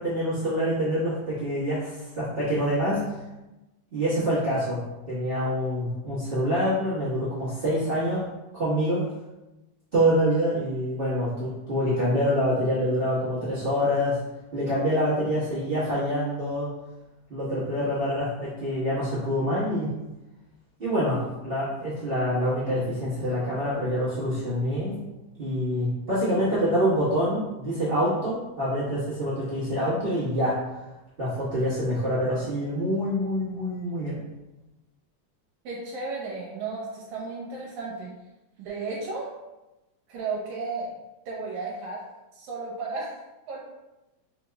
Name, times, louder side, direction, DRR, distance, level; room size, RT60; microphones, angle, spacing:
voice 1, 0.0-3.2 3.9-8.2 8.5-9.0 9.9-14.2 14.5-16.7 17.3-19.9 20.8-25.0 25.4-30.6 31.2-34.2, equal, 65° right, -13 dB, 0.5 m, -26 dB
voice 2, 35.6-38.1 38.6-39.3 40.1-40.9 41.3-42.0 42.3-43.2 43.5-43.6, right 3 dB, 85° right, -3 dB, 2.0 m, -33 dB
4.6 x 3.1 x 2.3 m, 1.0 s
omnidirectional pair, 3.3 m